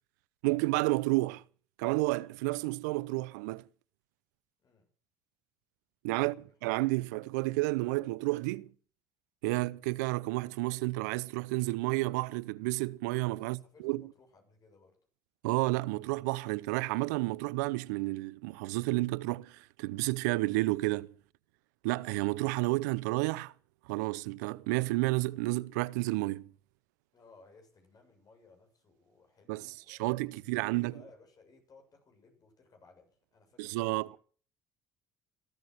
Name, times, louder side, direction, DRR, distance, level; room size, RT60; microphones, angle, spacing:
voice 1, 0.4-1.4 1.8-3.6 6.0-6.4 6.6-8.7 9.4-14.0 15.4-21.1 21.8-23.5 23.9-26.5 29.5-30.9 33.6-34.1, right 22 dB, 85° right, 0.6 m, -31 dB
voice 2, 6.2-6.5 13.4-15.0 27.1-34.2, left 3 dB, 45° left, 7.3 m, -61 dB
15.5 x 13.0 x 6.6 m
hypercardioid pair, 70°, 9 cm